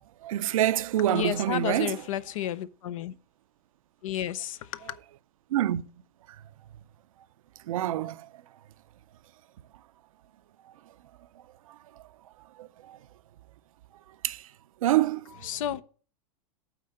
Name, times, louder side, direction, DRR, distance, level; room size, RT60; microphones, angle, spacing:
voice 1, 0.2-1.9 5.5-5.8 7.7-8.3 12.6-13.0 14.2-14.5 14.8-15.2, right 13 dB, 85° right, 0.5 m, -26 dB
voice 2, 1.0-3.2 4.0-5.0 15.3-15.8, left 12 dB, 75° left, 0.6 m, -32 dB
8.7 x 3.9 x 6.6 m
supercardioid pair, 130°, 17 cm